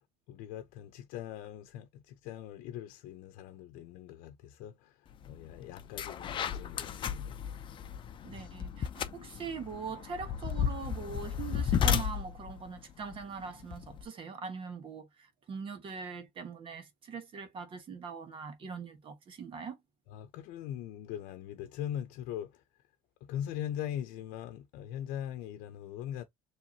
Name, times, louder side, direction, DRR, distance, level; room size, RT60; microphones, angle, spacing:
voice 1, 0.3-7.4 20.1-22.6 23.2-26.2, left 10 dB, 75° left, 0.7 m, -41 dB
sound 1, 5.2-5.4 5.8-14.0, left 8 dB, 35° left, 0.6 m, -34 dB
voice 2, 8.2-19.8, right 5 dB, 40° right, 1.2 m, -42 dB
4.6 x 3.2 x 2.8 m
cardioid pair, 135°, 14 cm